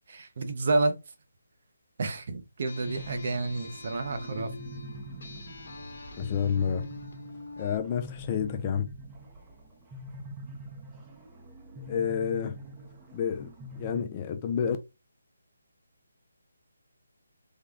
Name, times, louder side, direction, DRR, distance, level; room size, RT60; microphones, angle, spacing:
voice 1, 0.1-0.9 2.0-4.5, right 3 dB, 50° right, 0.7 m, -29 dB
sound 1, 2.7-7.8, left 3 dB, 60° left, 1.0 m, -45 dB
Interior Spaceship, 2.8-14.0, right 1 dB, 15° right, 0.6 m, -44 dB
voice 2, 6.1-6.9 7.6-8.9 11.9-12.6 13.1-13.5 13.8-14.8, left 7 dB, 25° left, 0.4 m, -29 dB
3.6 x 2.2 x 3.4 m
figure-of-eight pair, 160°, 0 cm